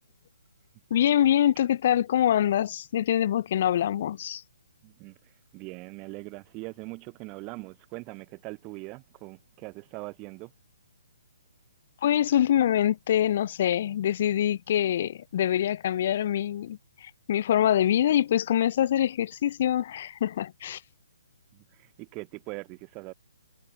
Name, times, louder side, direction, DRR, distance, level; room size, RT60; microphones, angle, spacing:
voice 1, 0.9-4.4 12.0-20.8, left 11 dB, 45° left, 0.5 m, -25 dB
voice 2, 4.8-10.5 21.5-23.1, right 26 dB, 25° right, 3.3 m, -41 dB
figure-of-eight pair, 140°, 0 cm